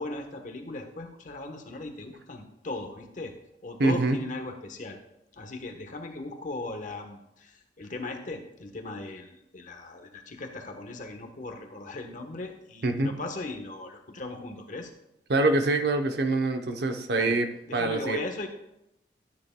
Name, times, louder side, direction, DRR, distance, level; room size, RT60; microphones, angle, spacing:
voice 1, 0.0-3.3 3.6-5.0 5.3-14.9 17.2-17.4 17.7-18.5, left 2 dB, 45° left, 5 dB, 1.1 m, -38 dB
voice 2, 3.8-4.2 12.8-13.2 15.3-18.2, right 2 dB, 65° right, 6 dB, 0.8 m, -25 dB
13.0 x 9.3 x 2.2 m, 0.84 s
head